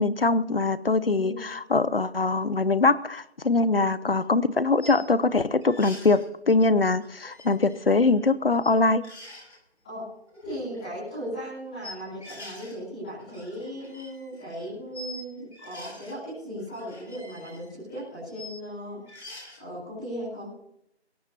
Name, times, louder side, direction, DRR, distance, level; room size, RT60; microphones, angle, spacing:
voice 1, 0.0-6.2 6.5-9.0, left 3 dB, 55° left, 16 dB, 0.8 m, -22 dB
voice 2, 1.1-1.5 9.8-10.1 10.4-19.0 19.6-20.5, equal, 5° left, -12 dB, 3.3 m, -37 dB
sound 1, 4.1-4.2 4.8-5.1 5.6-6.3 7.0-8.3 8.6-8.7 9.0-9.6 10.3-10.8 11.8-12.8 13.1-15.2 15.5-16.2 16.6-18.6 19.1-19.6, left 1 dB, 80° left, 7.9 m, -45 dB
21.5 x 17.5 x 3.0 m, 0.76 s
figure-of-eight pair, 180°, 34 cm